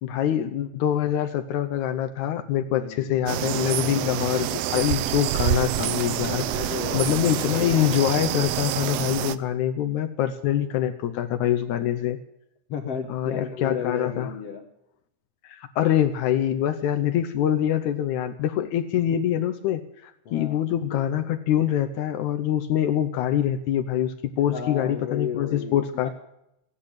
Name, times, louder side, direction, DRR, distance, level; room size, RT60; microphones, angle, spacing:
voice 1, 0.0-12.2 13.1-14.3 15.4-26.1, left 11 dB, 75° left, 10 dB, 2.2 m, -25 dB
voice 2, 2.7-3.3 6.2-7.6 12.7-14.7 20.3-20.6 24.5-26.0, left 7 dB, 60° left, 5 dB, 2.1 m, -34 dB
sound 1, 3.3-9.4, right 12 dB, 80° right, 1.4 m, -27 dB
16.5 x 10.0 x 8.6 m, 0.82 s
omnidirectional pair, 3.5 m